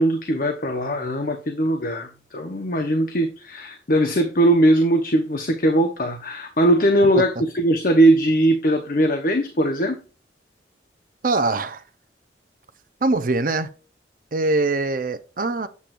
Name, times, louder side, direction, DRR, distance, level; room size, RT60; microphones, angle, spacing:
voice 1, 0.0-10.0, right 1 dB, 50° left, 0.9 m, -20 dB
voice 2, 11.2-11.8 13.0-13.7 14.3-15.7, right 3 dB, 50° right, 0.6 m, -22 dB
8.4 x 7.6 x 2.5 m
head